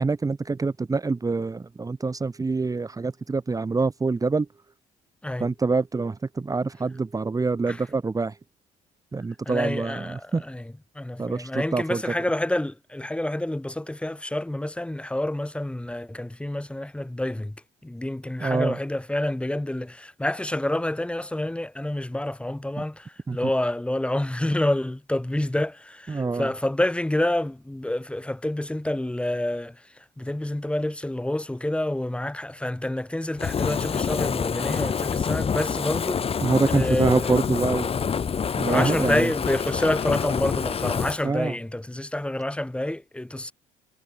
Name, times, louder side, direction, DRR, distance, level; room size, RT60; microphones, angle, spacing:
voice 1, 0.0-4.5 5.4-8.3 9.1-10.4 11.2-12.1 18.4-18.8 23.3-23.4 26.1-26.5 36.4-38.0 38.6-39.3 41.2-41.5, right 4 dB, 20° right, 2.6 m, -25 dB
voice 2, 9.4-17.6 17.8-29.8 30.2-36.2 36.7-37.4 38.7-43.5, left 1 dB, 5° left, 5.0 m, -28 dB
Fire, 33.4-41.2, left 6 dB, 35° left, 1.8 m, -27 dB
cardioid pair, 110°, 17 cm